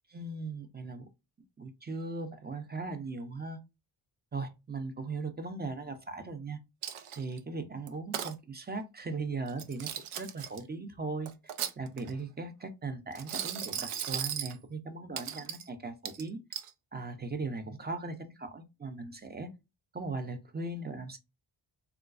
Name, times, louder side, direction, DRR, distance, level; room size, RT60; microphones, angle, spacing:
voice 1, 0.1-1.0 1.6-3.6 4.3-6.6 7.1-9.9 10.2-11.3 11.8-16.4 16.9-19.5 19.9-21.2, right 3 dB, 20° right, 0.5 m, -38 dB
Coin (dropping), 6.8-7.4 7.9-8.3 9.5-10.6 11.3-12.2 13.1-14.6 15.2-15.7 16.0-16.7, right 9 dB, 90° right, 0.6 m, -37 dB
3.7 x 2.3 x 2.4 m
wide cardioid pair, 110°, 48 cm